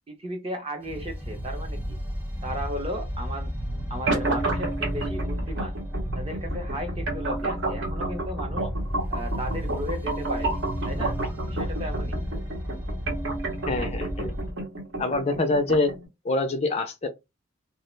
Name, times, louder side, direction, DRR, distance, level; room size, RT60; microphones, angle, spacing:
voice 1, 0.1-2.0 2.4-5.8 6.1-8.7 9.1-11.2 11.5-12.2, equal, 30° right, 0.6 m, -35 dB
sound 1, 0.8-14.5, equal, 10° right, 1.0 m, -32 dB
sound 2, 4.1-16.1, right 2 dB, 70° right, 0.9 m, -31 dB
voice 2, 13.7-14.3 15.0-15.9 16.2-17.1, left 2 dB, 30° left, 0.3 m, -25 dB
2.3 x 2.0 x 3.1 m
head